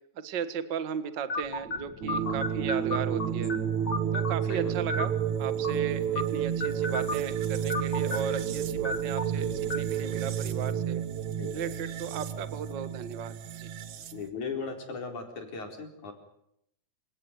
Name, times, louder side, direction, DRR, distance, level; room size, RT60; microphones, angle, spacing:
voice 1, 0.2-3.5 4.1-11.0 11.5-13.7, right 7 dB, 40° right, 12 dB, 1.9 m, -36 dB
sound 1, 1.3-10.8, left 3 dB, 35° left, 2.7 m, -37 dB
sound 2, 2.0-14.3, right 9 dB, 70° right, 2.7 m, -31 dB
voice 2, 4.5-4.8 11.3-11.5 14.1-16.1, left 5 dB, 65° left, 4 dB, 5.8 m, -38 dB
27.5 x 17.5 x 9.4 m, 0.74 s
omnidirectional pair, 3.6 m